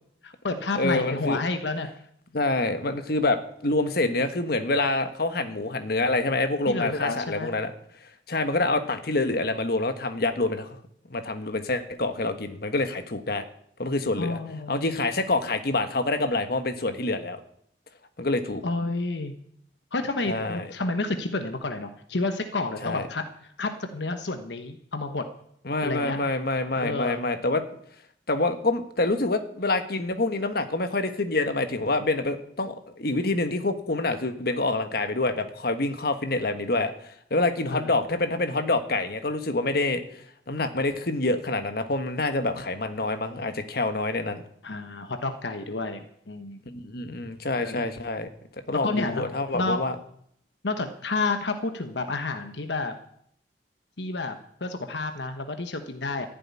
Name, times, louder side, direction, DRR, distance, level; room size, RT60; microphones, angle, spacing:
voice 1, 0.2-1.9 6.7-7.5 14.2-14.8 18.6-19.3 19.9-23.2 23.6-25.3 25.8-26.3 26.8-27.2 37.7-37.9 44.6-46.6 47.6-47.9 48.7-49.8 50.6-52.9 54.0-56.3, left 3 dB, 75° left, 7 dB, 1.2 m, -30 dB
voice 2, 0.7-1.4 2.3-7.7 8.3-10.8 11.1-13.4 13.8-14.4 14.7-17.4 18.2-18.6 20.3-20.7 22.8-23.1 25.6-27.6 28.3-44.4 46.7-48.3 48.7-49.9, left 2 dB, 60° left, 8 dB, 1.4 m, -26 dB
15.0 x 7.7 x 9.8 m, 0.69 s
head